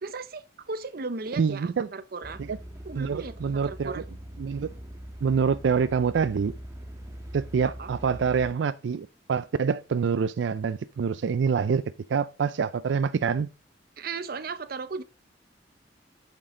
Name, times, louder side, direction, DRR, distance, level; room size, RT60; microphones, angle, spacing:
voice 1, 0.0-2.4 2.8-4.0 7.6-7.9 14.0-15.0, right 4 dB, 55° right, 0.7 m, -36 dB
voice 2, 1.4-1.9 2.5-2.6 3.0-4.0 4.4-4.7 5.2-6.5 7.3-11.8 12.1-13.5, right 6 dB, 85° right, 0.4 m, -26 dB
sound 1, 2.2-8.5, equal, 20° right, 1.4 m, -42 dB
8.7 x 6.0 x 3.7 m
head